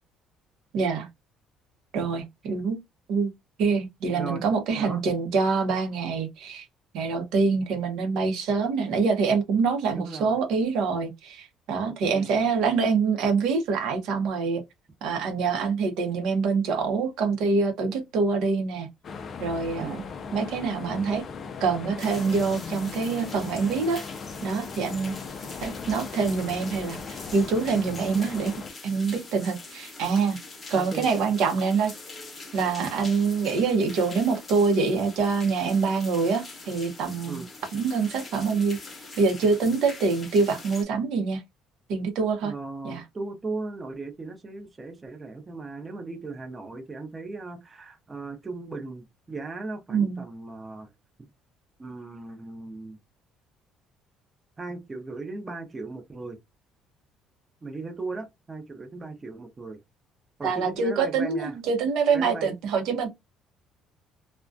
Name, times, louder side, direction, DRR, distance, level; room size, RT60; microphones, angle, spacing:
voice 1, 0.7-1.1 1.9-2.8 3.1-3.3 3.6-6.7 6.9-14.6 15.0-18.9 19.4-20.0 20.3-21.2 21.6-24.0 24.4-25.1 25.6-28.5 28.8-30.4 30.7-31.9 32.5-37.4 37.7-38.8 39.2-41.4 41.9-42.5 42.8-43.0 49.9-50.2 60.4-63.1, right 4 dB, 75° right, 0.6 m, -25 dB
voice 2, 10.0-10.4 12.1-12.3 19.8-20.0 30.8-31.1 37.3-37.5 42.4-50.9 51.8-53.0 54.6-56.4 57.6-59.8 60.4-61.6 62.1-62.5, right 3 dB, 20° right, 0.6 m, -37 dB
sound 1, 19.0-28.7, left 5 dB, 40° left, 0.3 m, -38 dB
sound 2, 22.0-40.8, left 3 dB, 25° left, 0.8 m, -43 dB
2.3 x 2.1 x 2.5 m
cardioid pair, 130°, 0 cm